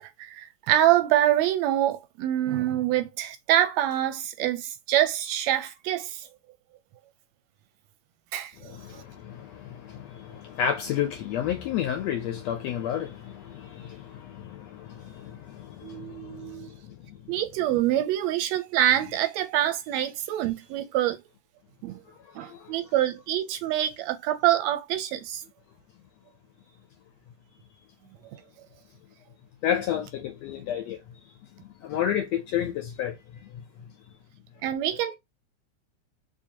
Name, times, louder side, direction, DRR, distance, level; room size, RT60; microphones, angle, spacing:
voice 1, 0.0-6.3 8.3-8.5 15.8-16.7 17.3-21.2 21.8-22.0 22.3-25.4 34.6-35.2, right 12 dB, 80° right, 1.6 m, -25 dB
voice 2, 8.6-17.4 22.1-22.9 29.6-31.2 31.6-33.9, left 9 dB, 75° left, 1.7 m, -32 dB
4.7 x 2.7 x 2.8 m
omnidirectional pair, 3.5 m